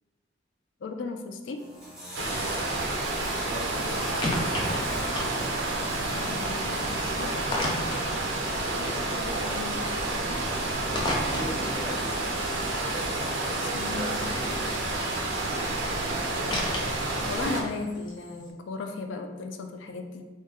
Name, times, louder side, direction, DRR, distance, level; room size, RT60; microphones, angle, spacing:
voice 1, 0.8-1.6 6.1-7.4 9.5-9.9 13.7-14.4 17.3-20.2, left 3 dB, 85° left, 5 dB, 0.4 m, -36 dB
sound 1, 1.6-15.4, right 1 dB, 5° right, 0.9 m, -44 dB
sound 2, 1.8-18.5, left 1 dB, 25° left, 0.5 m, -38 dB
sound 3, 2.1-17.6, right 2 dB, 85° right, 0.5 m, -30 dB
voice 2, 2.2-2.7 3.4-4.9 8.4-9.7 10.9-12.2 12.9-14.7, equal, 20° right, -4 dB, 0.6 m, -40 dB
3.6 x 2.2 x 3.3 m, 1.2 s
head